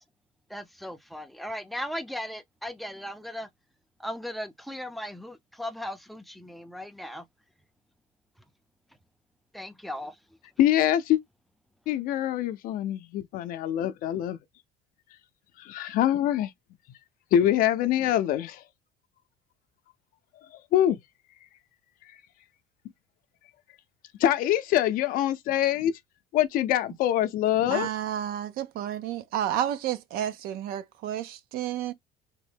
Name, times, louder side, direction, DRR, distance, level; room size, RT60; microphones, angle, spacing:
voice 1, 0.5-3.5 4.0-7.2 9.5-10.2, left 1 dB, ahead, 0.4 m, -37 dB
voice 2, 10.6-11.2 11.9-14.4 15.6-16.5 17.3-18.6 20.7-21.0 24.2-25.9 26.3-27.9, left 11 dB, 60° left, 0.5 m, -24 dB
voice 3, 27.7-31.9, right 11 dB, 65° right, 0.5 m, -31 dB
3.5 x 2.1 x 3.3 m
cardioid pair, 120°, 16 cm